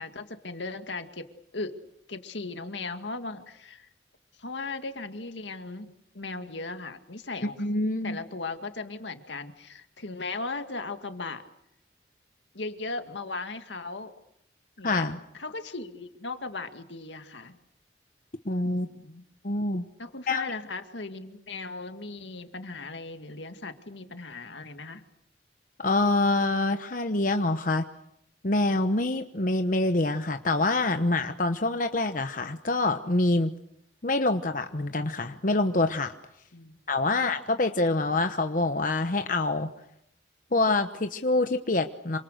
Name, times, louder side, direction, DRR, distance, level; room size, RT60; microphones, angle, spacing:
voice 1, 0.0-1.8 2.1-3.9 4.4-7.7 8.0-11.4 12.5-14.1 14.8-15.1 15.3-17.5 18.6-19.2 20.0-25.0 36.5-36.8 37.1-37.2, left 3 dB, 80° left, 7 dB, 2.1 m, -37 dB
voice 2, 7.6-8.2 14.8-15.2 18.5-18.9 19.4-19.8 20.3-20.5 25.8-27.8 28.4-33.5 34.0-36.1 36.9-39.7 40.5-42.2, left 2 dB, 45° left, 7 dB, 1.1 m, -26 dB
27.5 x 26.0 x 6.7 m, 0.79 s
head